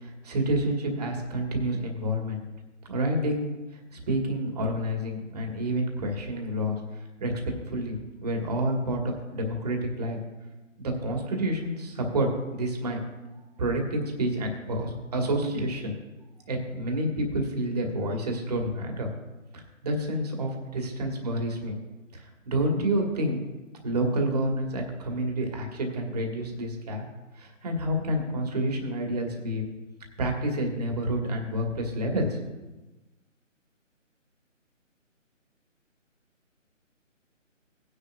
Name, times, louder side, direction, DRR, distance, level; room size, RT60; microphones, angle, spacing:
voice 1, 0.0-2.4 2.9-3.5 3.9-6.8 7.2-7.3 7.7-10.2 10.8-13.0 13.6-15.9 16.5-19.1 19.5-21.8 22.1-23.4 23.8-27.0 27.4-29.7 30.2-32.4, right 1 dB, 30° right, 1 dB, 1.9 m, -29 dB
17.5 x 9.8 x 2.5 m, 1.1 s
figure-of-eight pair, 150°, 39 cm